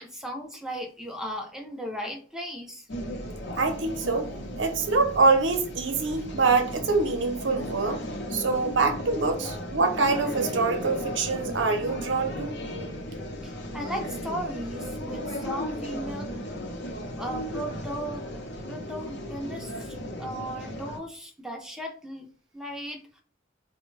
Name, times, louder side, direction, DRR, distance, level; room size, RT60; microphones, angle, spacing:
voice 1, 0.0-2.8 8.5-8.6 9.4-9.5 11.9-12.0 13.4-16.4 17.2-23.2, equal, 5° right, 0.5 m, -37 dB
sound 1, 2.9-21.0, equal, 65° left, 0.7 m, -35 dB
voice 2, 3.6-4.3 4.6-8.0 8.3-12.6, right 3 dB, 75° right, 0.7 m, -25 dB
4.3 x 2.1 x 3.1 m
head